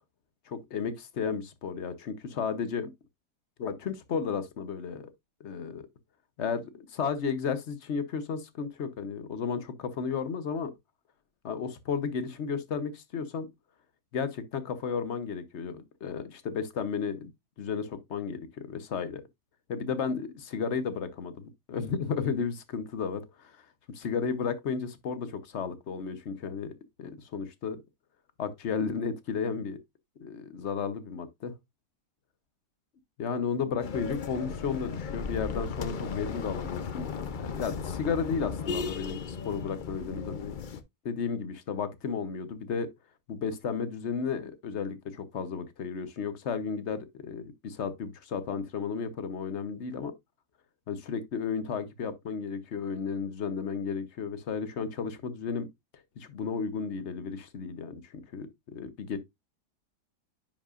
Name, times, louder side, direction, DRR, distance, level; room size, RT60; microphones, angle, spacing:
voice 1, 0.5-2.9 3.6-5.1 5.4-5.8 6.4-10.7 11.4-13.5 14.1-17.3 17.6-19.2 19.7-23.2 24.0-26.7 27.0-27.8 28.4-29.8 30.2-31.5 33.2-40.6 41.0-42.9 43.3-50.1 50.9-55.7 56.2-59.2, left 6 dB, 50° left, 1.0 m, -33 dB
sound 1, 33.8-40.8, left 5 dB, 70° left, 0.4 m, -36 dB
9.9 x 5.5 x 2.4 m
omnidirectional pair, 1.8 m